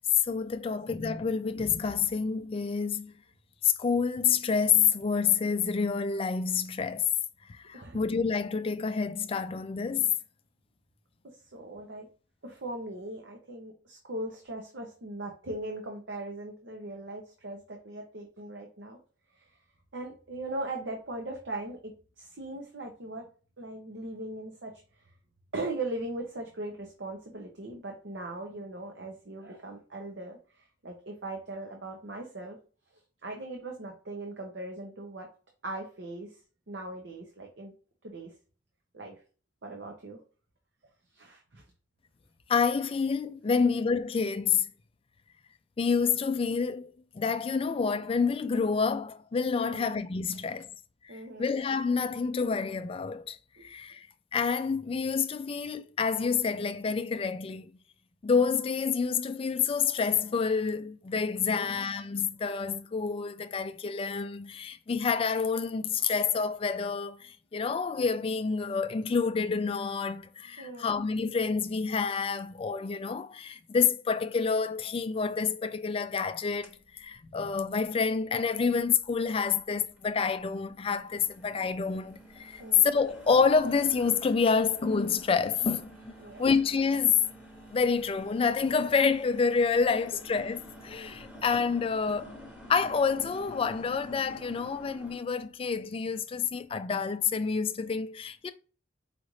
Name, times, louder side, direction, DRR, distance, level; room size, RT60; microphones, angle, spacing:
voice 1, 0.2-3.1 3.6-7.1 7.5-10.1 42.5-44.7 45.8-50.7 51.0-51.1 51.4-54.1 54.3-57.7 58.2-87.2 87.7-92.4 92.7-98.5, left 5 dB, 30° left, 0.3 m, -28 dB
voice 2, 11.5-12.1 12.4-19.0 19.3-19.4 19.9-23.3 23.6-24.7 25.5-30.4 30.8-32.6 33.2-35.3 35.6-36.3 36.7-37.7 38.0-38.3 38.9-39.1 39.6-40.2 41.1-41.6 49.6-50.0 51.1-51.5 53.6-53.7 61.4-61.8 70.6-70.9 82.6-82.9 86.2-86.4, right 2 dB, 65° right, 0.8 m, -39 dB
sound 1, 76.6-76.7 77.2-77.3 78.0-78.1 79.3-79.4 79.8-80.4 80.7-95.2, equal, 5° right, 1.0 m, -48 dB
5.0 x 2.5 x 3.1 m
head